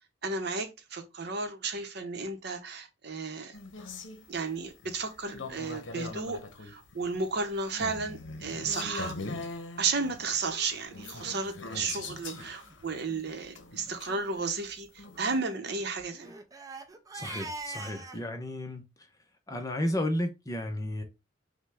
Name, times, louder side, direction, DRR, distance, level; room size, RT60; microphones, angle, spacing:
voice 1, 0.2-3.6 4.3-9.1 9.8-16.3, right 4 dB, 55° right, 0.8 m, -33 dB
sound 1, 3.5-15.5, left 3 dB, 70° left, 0.8 m, -42 dB
Crying sobbing, 11.4-11.6 12.3-12.4 12.6-12.7 13.1-13.3 13.8-14.0 15.2-18.2, right 2 dB, 20° right, 0.5 m, -43 dB
voice 2, 17.1-18.8 19.5-21.0, left 1 dB, 20° left, 0.7 m, -32 dB
5.7 x 2.2 x 3.4 m
head